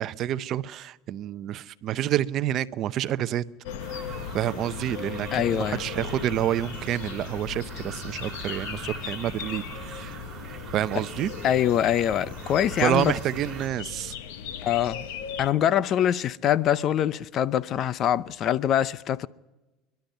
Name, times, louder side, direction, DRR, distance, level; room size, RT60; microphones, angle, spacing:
voice 1, 0.0-3.4 4.3-10.2 10.7-11.3 12.8-14.1, right 12 dB, 45° right, 0.7 m, -28 dB
sound 1, 3.6-15.5, left 8 dB, 85° left, 1.5 m, -37 dB
sound 2, 3.8-13.7, right 6 dB, 25° right, 2.9 m, -42 dB
voice 2, 5.3-5.9 11.4-13.1 14.6-15.1 15.4-19.3, left 10 dB, 40° left, 0.6 m, -24 dB
27.5 x 12.0 x 9.2 m
supercardioid pair, 135°, 0 cm